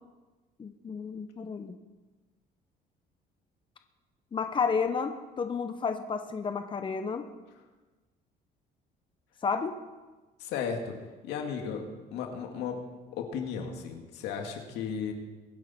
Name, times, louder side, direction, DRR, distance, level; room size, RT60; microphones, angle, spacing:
voice 1, 0.6-1.7 4.3-7.2 9.4-9.8, left 5 dB, 30° left, 7 dB, 0.9 m, -31 dB
voice 2, 10.4-11.0 11.2-11.8 12.1-12.8 13.1-15.1, left 6 dB, 90° left, 3 dB, 2.3 m, -34 dB
22.5 x 9.5 x 4.5 m, 1.2 s
cardioid pair, 110°, 17 cm